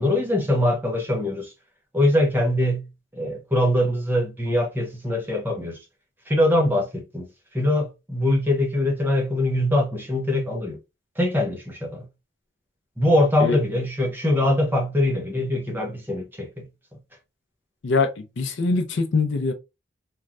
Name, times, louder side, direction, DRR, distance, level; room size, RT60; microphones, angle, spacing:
voice 1, 0.0-1.5 1.9-2.8 3.1-5.8 6.3-7.3 7.5-10.8 11.2-12.1 13.0-16.7, left 1 dB, 10° right, 0.6 m, -22 dB
voice 2, 17.8-19.5, left 3 dB, 60° left, 0.5 m, -23 dB
3.1 x 2.3 x 2.4 m
head